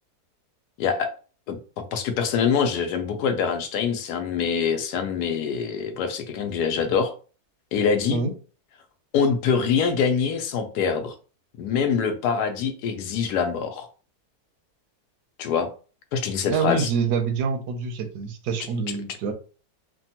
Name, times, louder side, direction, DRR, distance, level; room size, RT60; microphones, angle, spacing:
voice 1, 0.8-1.1 1.5-1.6 1.9-7.1 7.7-8.2 9.1-11.2 11.6-13.9 15.4-15.7 16.1-16.9, left 6 dB, 85° left, 6 dB, 1.2 m, -24 dB
voice 2, 16.5-19.3, right 5 dB, 85° right, 7 dB, 1.2 m, -26 dB
3.3 x 2.2 x 2.8 m, 0.37 s
omnidirectional pair, 1.7 m